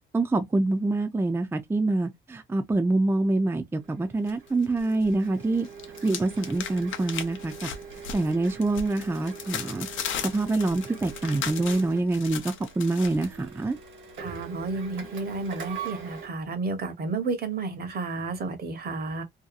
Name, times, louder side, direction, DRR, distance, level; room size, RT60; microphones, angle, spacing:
voice 1, 0.1-5.7 6.0-7.7 8.1-9.9 10.2-13.8, right 2 dB, 10° right, 0.4 m, -26 dB
Printer, 3.8-16.3, right 6 dB, 75° right, 1.3 m, -43 dB
FX Envelope Open, 4.3-5.1 5.4-13.3, left 8 dB, 75° left, 0.6 m, -37 dB
voice 2, 14.2-19.2, right 3 dB, 50° right, 0.9 m, -31 dB
2.7 x 2.2 x 2.4 m
cardioid pair, 90°, 20 cm